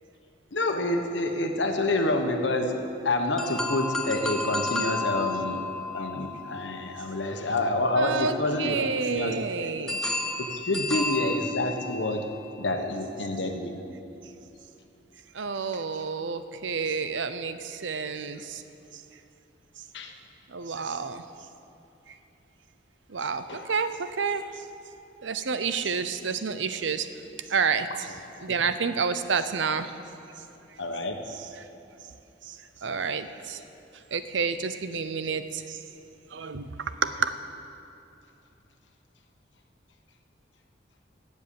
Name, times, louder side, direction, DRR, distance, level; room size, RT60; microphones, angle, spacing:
voice 1, 0.5-2.8 3.0-5.6 5.9-8.8 9.1-9.6 10.5-12.2 12.6-13.7 19.9-20.1 23.5-23.8 28.5-28.6 30.8-31.2, left 2 dB, 80° left, 4 dB, 1.3 m, -28 dB
sound 1, 3.4-7.5 9.9-12.2, left 2 dB, 5° left, 1.1 m, -32 dB
voice 2, 8.0-10.0 15.3-18.6 20.5-21.2 23.1-24.5 25.2-27.1 27.5-28.1 28.4-29.9 32.5-32.6 32.8-33.6 34.1-35.8 36.3-37.3, right 5 dB, 85° right, 11 dB, 0.7 m, -29 dB
17.5 x 8.1 x 7.1 m, 2.8 s
head